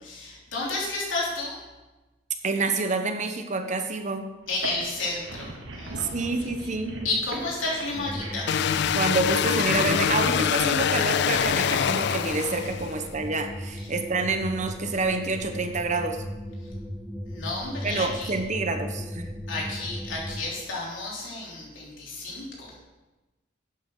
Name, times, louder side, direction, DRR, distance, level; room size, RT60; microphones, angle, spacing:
voice 1, 0.0-1.6 4.5-6.3 7.0-8.5 17.3-18.3 19.5-22.7, left 2 dB, 90° left, -4 dB, 3.5 m, -32 dB
voice 2, 2.4-4.3 6.0-7.0 8.9-16.2 17.8-19.3, right 3 dB, 40° right, 6 dB, 0.9 m, -28 dB
sound 1, 4.5-9.9, right 2 dB, 75° right, 1.4 m, -40 dB
sound 2, 7.9-20.4, equal, ahead, 0.6 m, -36 dB
sound 3, 8.5-13.0, left 8 dB, 60° left, 0.3 m, -25 dB
11.5 x 8.7 x 3.8 m, 1.1 s
head